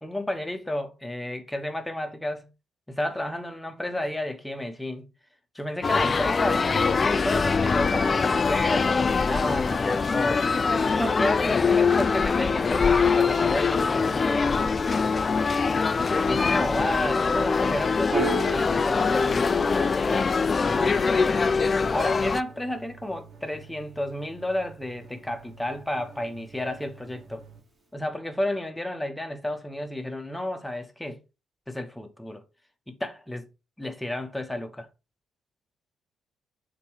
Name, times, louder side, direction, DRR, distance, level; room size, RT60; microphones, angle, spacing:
voice 1, 0.0-2.5 2.9-5.1 5.5-10.4 10.9-14.7 16.3-19.5 20.0-20.3 20.6-21.0 21.9-27.4 27.9-31.2 31.7-32.4 32.9-33.5 33.8-34.9, left 1 dB, 10° left, 1.1 m, -32 dB
sound 1, 5.8-22.4, left 5 dB, 35° left, 0.3 m, -23 dB
Piano, 18.1-25.0, right 2 dB, 30° right, 2.9 m, -37 dB
sound 2, 20.7-27.6, right 4 dB, 75° right, 1.6 m, -49 dB
6.8 x 3.0 x 4.7 m
cardioid pair, 90°, 0 cm